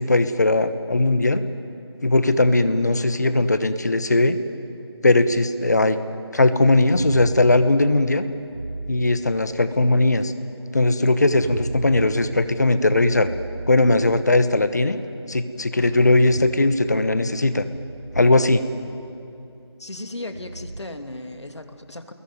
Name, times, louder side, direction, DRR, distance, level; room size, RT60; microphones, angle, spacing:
voice 1, 0.0-1.4 2.0-4.4 5.0-6.0 6.3-8.3 8.9-10.3 10.7-13.3 13.7-15.0 15.3-17.7 18.1-18.6, left 2 dB, 40° left, 11 dB, 1.2 m, -19 dB
sound 1, 5.4-5.5 6.9-7.9 8.5-9.7 11.3-12.3 13.0-14.2 15.9-16.6 17.6-18.5 20.3-20.8, right 2 dB, 20° right, 0.8 m, -35 dB
voice 2, 19.8-22.1, left 1 dB, 75° left, 6 dB, 2.6 m, -36 dB
28.0 x 21.5 x 9.4 m, 2.6 s
figure-of-eight pair, 175°, 14 cm